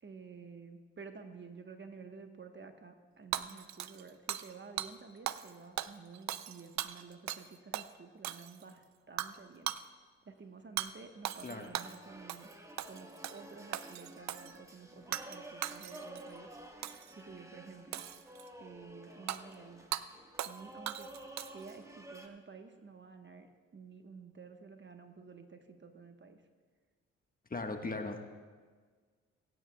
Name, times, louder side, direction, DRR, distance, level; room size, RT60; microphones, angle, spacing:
voice 1, 0.0-9.7 10.2-12.5 12.9-16.5 17.1-18.0 18.6-19.9 20.4-21.1 21.5-26.4, right 5 dB, 35° right, 6 dB, 1.3 m, -51 dB
Hammer / Shatter, 3.3-4.5 4.8-4.9 5.3-5.5 5.8-7.5 7.7-7.9 8.2-8.7 9.2-9.4 9.7-9.8 10.8-10.9 11.2-12.0 12.3-12.5 12.8-13.4 13.7-14.5 15.1-15.4 15.6-16.2 16.8-17.1 17.9-18.5 19.3-19.4 19.9-20.0 20.4-20.6 20.9-21.7, right 12 dB, 60° right, 0.6 m, -38 dB
voice 2, 11.4-11.7 27.5-28.2, left 3 dB, 25° left, 4 dB, 1.4 m, -38 dB
sound 1, 11.4-22.3, right 1 dB, 10° right, 1.5 m, -52 dB
25.0 x 9.3 x 2.3 m, 1.5 s
hypercardioid pair, 45°, 32 cm